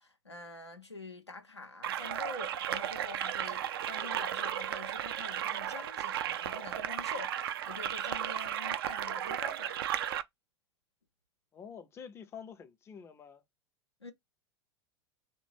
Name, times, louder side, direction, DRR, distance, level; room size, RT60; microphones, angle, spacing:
voice 1, 0.0-9.9 14.0-14.1, left 3 dB, 90° left, 0.7 m, -46 dB
sound 1, 1.8-10.2, right 10 dB, 60° right, 0.4 m, -35 dB
voice 2, 11.5-13.4, left 7 dB, 20° left, 0.5 m, -48 dB
3.7 x 2.2 x 3.2 m
figure-of-eight pair, 85°, 14 cm